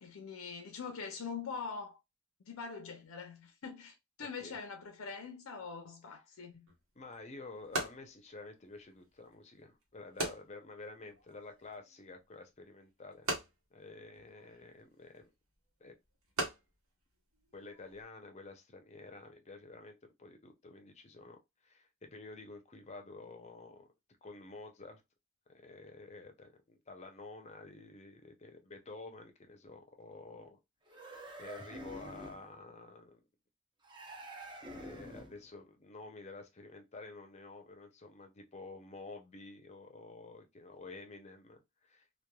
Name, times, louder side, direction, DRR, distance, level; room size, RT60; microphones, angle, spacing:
voice 1, 0.0-2.0 2.4-6.7, left 5 dB, 80° left, 0.5 m, -43 dB
sound 1, 6.7-18.1, right 1 dB, 85° right, 1.0 m, -43 dB
voice 2, 7.0-13.3 13.7-15.3 15.8-15.9 17.5-23.9 24.2-25.0 25.5-30.6 30.9-33.2 34.7-42.2, left 3 dB, 30° left, 0.5 m, -50 dB
sound 2, 30.9-32.5 33.8-35.5, right 1 dB, 20° right, 0.6 m, -47 dB
3.0 x 2.2 x 2.2 m
head